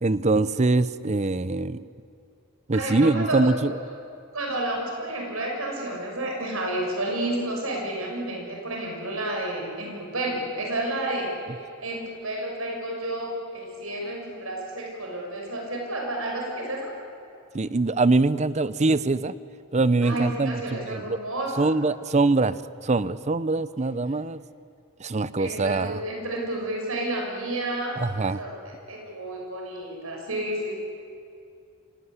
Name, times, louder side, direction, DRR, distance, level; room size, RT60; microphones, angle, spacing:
voice 1, 0.0-1.8 2.7-3.8 17.5-19.3 19.7-21.2 21.6-22.6 22.8-24.4 25.0-26.0 28.0-28.4, right 3 dB, 35° right, 16 dB, 0.6 m, -23 dB
voice 2, 2.7-3.5 4.3-16.9 20.0-21.7 25.4-28.0 28.4-28.6 28.9-30.7, right 1 dB, 80° right, 0 dB, 6.2 m, -31 dB
26.5 x 17.5 x 9.7 m, 2.5 s
head